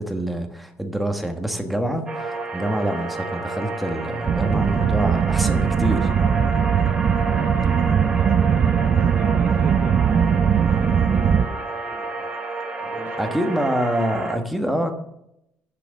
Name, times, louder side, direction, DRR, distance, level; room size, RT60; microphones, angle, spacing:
voice 1, 0.0-6.1 13.2-14.9, right 1 dB, ahead, 4 dB, 1.2 m, -26 dB
sound 1, 2.1-14.3, right 3 dB, 20° right, 1.8 m, -30 dB
sound 2, 4.2-11.5, right 7 dB, 35° right, 0.4 m, -20 dB
voice 2, 7.2-12.3 12.8-13.7, right 4 dB, 50° right, -1 dB, 3.0 m, -40 dB
10.5 x 6.0 x 7.0 m, 0.81 s
cardioid pair, 140°, 4 cm